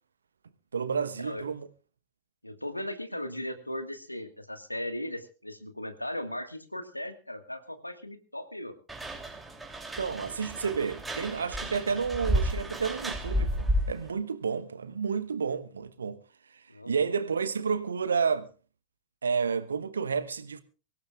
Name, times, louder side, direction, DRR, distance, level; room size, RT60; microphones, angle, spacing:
voice 1, 0.7-1.7 10.0-16.2 16.5-18.5 19.2-20.6, right 5 dB, 70° right, 1.2 m, -30 dB
voice 2, 2.4-8.7 16.7-17.1, left 1 dB, 85° left, 1.7 m, -37 dB
sound 1, 8.9-14.1, equal, 10° right, 3.0 m, -32 dB
24.0 x 16.0 x 2.4 m
figure-of-eight pair, 90°, 0 cm